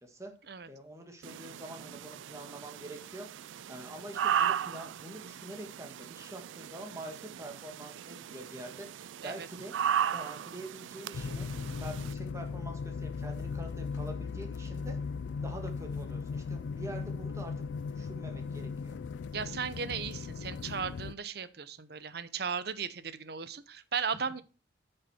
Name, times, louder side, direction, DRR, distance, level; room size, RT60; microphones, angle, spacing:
voice 1, 0.0-0.3 0.7-3.3 3.7-9.7 10.1-11.5 11.8-15.0 15.4-17.5 17.9-19.0, right 1 dB, 15° right, 3 dB, 1.8 m, -45 dB
sound 1, 1.2-12.1, right 9 dB, 90° right, 0.4 m, -36 dB
sound 2, 11.1-21.1, left 5 dB, 75° left, 0.3 m, -37 dB
voice 2, 19.3-24.4, right 6 dB, 55° right, 14 dB, 0.7 m, -36 dB
9.7 x 6.6 x 4.3 m, 0.33 s
head